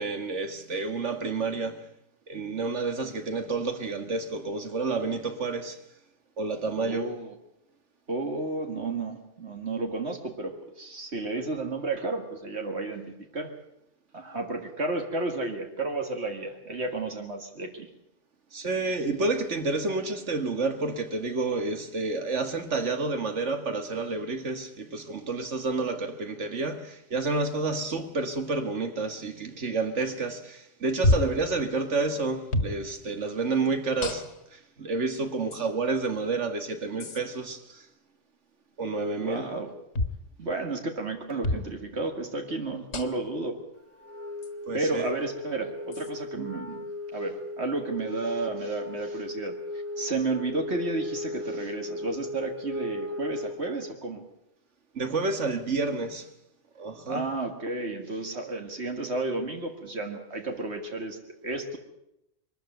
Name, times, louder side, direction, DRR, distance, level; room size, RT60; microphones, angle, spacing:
voice 1, 0.0-1.9 2.3-5.8 6.4-7.1 18.5-37.9 38.8-39.5 44.7-45.1 46.3-46.5 54.9-56.3 56.8-57.3, right 3 dB, 85° right, 2.0 m, -30 dB
voice 2, 6.8-7.3 8.1-13.5 14.1-17.9 39.2-39.7 40.4-43.6 44.7-46.8 47.1-49.6 50.0-54.2 57.1-61.8, right 3 dB, 70° right, 2.3 m, -32 dB
sound 1, 31.0-31.4 32.5-32.8 34.0-34.5 35.5-35.6 37.0-37.2 39.9-40.2 41.4-41.7 42.9-43.3 44.4-44.5 45.9-46.1, left 2 dB, 75° left, 1.8 m, -27 dB
Wind instrument woodwind instrument, 44.0-53.8, left 1 dB, 10° right, 1.5 m, -37 dB
22.5 x 14.0 x 9.2 m
omnidirectional pair, 1.2 m